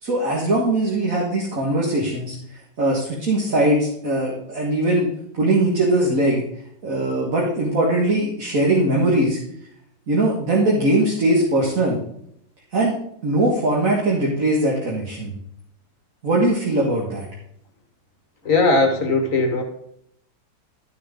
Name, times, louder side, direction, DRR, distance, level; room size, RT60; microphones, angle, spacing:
voice 1, 0.0-2.4 2.8-5.1 5.3-6.4 6.8-9.4 10.1-12.0 12.7-13.0 13.2-15.3 16.2-17.3, right 1 dB, 45° right, -3 dB, 2.1 m, -20 dB
voice 2, 18.4-19.6, left 3 dB, 45° left, 5 dB, 1.6 m, -18 dB
12.0 x 6.8 x 3.8 m, 0.73 s
omnidirectional pair, 2.1 m